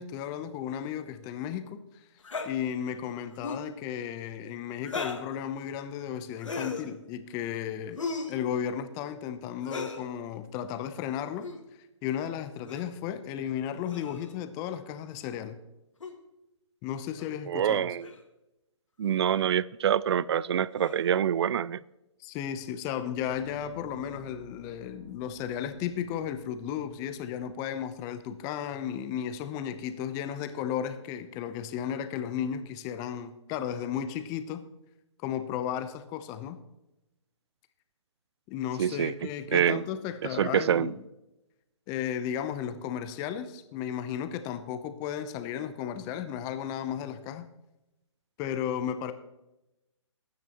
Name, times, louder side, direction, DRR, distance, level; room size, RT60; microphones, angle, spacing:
voice 1, 0.0-1.8 2.4-8.0 8.3-11.5 12.0-15.6 16.8-17.9 22.2-34.6 35.2-36.6 38.5-41.0 41.9-47.5 48.4-49.1, left 9 dB, 20° left, 0.8 m, -34 dB
sound 1, 2.2-2.5 3.3-3.7 4.8-5.3 6.4-6.9 8.0-8.4 9.6-10.0 11.3-11.6 12.7-12.9 13.9-14.3 16.0-16.1 17.2-17.3 18.0-18.2 19.0-19.2 20.8-21.1, left 4 dB, 80° left, 2.1 m, -37 dB
voice 2, 17.5-18.1 19.0-21.8 38.8-39.1 39.5-39.8 40.4-40.9, right 9 dB, 55° right, 0.4 m, -26 dB
sound 2, 23.2-29.2, equal, 80° right, 5.4 m, -51 dB
21.5 x 9.6 x 3.0 m
figure-of-eight pair, 140°, 16 cm